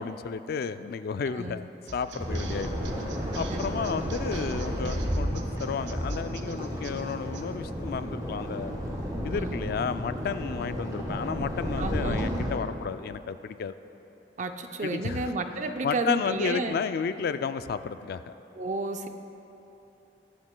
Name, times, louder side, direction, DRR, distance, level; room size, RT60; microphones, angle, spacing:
voice 1, 0.0-1.7 1.9-3.0 3.3-8.7 9.2-13.7 14.8-15.3 15.8-18.3, left 6 dB, 60° left, 12 dB, 0.3 m, -32 dB
sound 1, 1.9-7.4, right 5 dB, 90° right, 0.6 m, -45 dB
sound 2, 2.2-12.5, equal, 20° right, 1.5 m, -32 dB
voice 2, 3.5-4.1 9.3-9.6 11.8-12.5 14.4-16.8 18.6-19.1, right 3 dB, 45° right, 6 dB, 0.5 m, -32 dB
22.0 x 7.4 x 2.2 m, 3.0 s
head